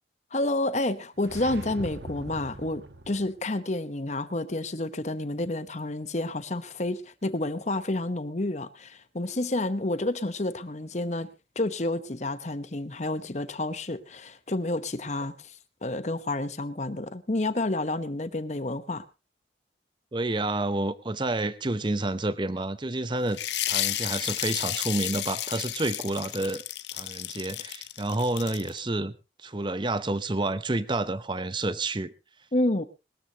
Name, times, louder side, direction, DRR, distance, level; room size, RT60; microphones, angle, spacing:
voice 1, 0.3-11.3 11.6-15.3 15.8-19.0 32.5-32.8, left 2 dB, 40° left, 1.0 m, -29 dB
sound 1, 1.2-3.4, right 2 dB, 70° right, 1.3 m, -41 dB
voice 2, 20.1-23.4 23.7-26.6 26.9-32.1, right 2 dB, 25° right, 0.7 m, -29 dB
sound 2, 23.3-28.8, left 13 dB, 70° left, 0.8 m, -32 dB
21.0 x 13.5 x 2.9 m
head